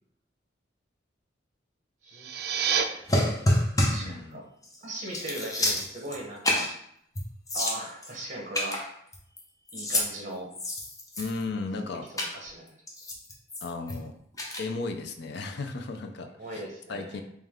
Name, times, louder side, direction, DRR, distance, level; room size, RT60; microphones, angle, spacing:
voice 1, 2.0-3.0 3.9-4.4 4.8-6.7 7.5-8.8 9.7-10.5 12.1-12.7 16.3-17.2, right 1 dB, 40° right, 0 dB, 1.0 m, -39 dB
sound 1, 2.0-2.8, right 7 dB, 55° right, 0.3 m, -28 dB
sound 2, 3.1-4.1 4.6-4.8 5.1-6.2 6.4-6.8 7.2-7.3 7.5-8.1 8.5-9.4 9.7-10.1 10.5-11.5 12.2-12.3 12.9-14.0 14.4-14.6, left 1 dB, 20° left, 0.7 m, -28 dB
voice 2, 4.0-4.4 11.2-12.0 13.6-14.1 14.6-16.3 16.5-16.6 16.9-17.2, left 3 dB, 65° left, 5 dB, 0.5 m, -34 dB
3.4 x 3.1 x 3.5 m, 0.70 s
head